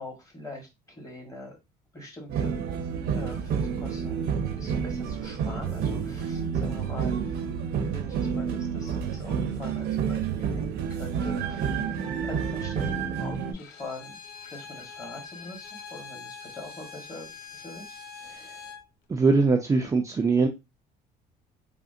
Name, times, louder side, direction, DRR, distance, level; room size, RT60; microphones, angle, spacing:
voice 1, 0.0-1.6 1.9-2.6 3.1-7.4 7.8-11.8 12.2-14.2 14.4-18.0, left 2 dB, 20° left, 1.2 m, -43 dB
sound 1, 2.3-13.5, right 7 dB, 75° right, 0.6 m, -29 dB
Bowed string instrument, 13.5-18.9, left 5 dB, 70° left, 0.5 m, -44 dB
voice 2, 19.1-20.5, right 4 dB, 20° right, 0.3 m, -22 dB
3.5 x 2.1 x 2.5 m
cardioid pair, 110°, 17 cm